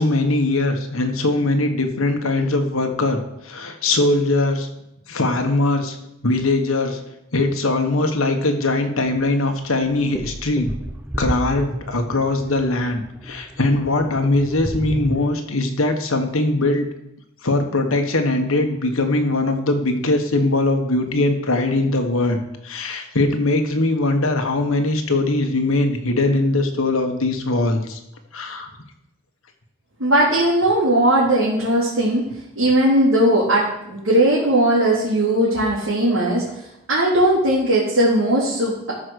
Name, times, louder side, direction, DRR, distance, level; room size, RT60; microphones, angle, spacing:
voice 1, 0.0-4.7 5.1-6.0 6.2-7.0 7.3-10.7 11.2-16.9 17.4-28.0 28.3-28.7, left 2 dB, 85° left, 5 dB, 1.5 m, -21 dB
sound 1, 9.0-9.1 9.6-15.2, equal, 10° right, 0.7 m, -31 dB
voice 2, 30.0-32.3 32.6-36.4 36.9-38.9, right 1 dB, 85° right, -9 dB, 3.6 m, -18 dB
13.0 x 5.2 x 6.5 m, 0.83 s
head